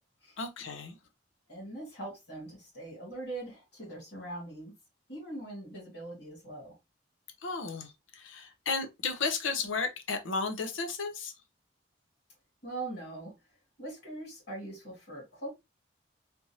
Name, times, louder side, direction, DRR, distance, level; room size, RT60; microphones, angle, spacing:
voice 1, 0.4-1.0 7.4-11.3, left 4 dB, 85° left, 0.7 m, -34 dB
voice 2, 1.5-4.7 5.1-6.7 12.6-13.3 13.8-15.5, right 2 dB, 55° left, 2.3 m, -41 dB
3.4 x 2.8 x 2.8 m
head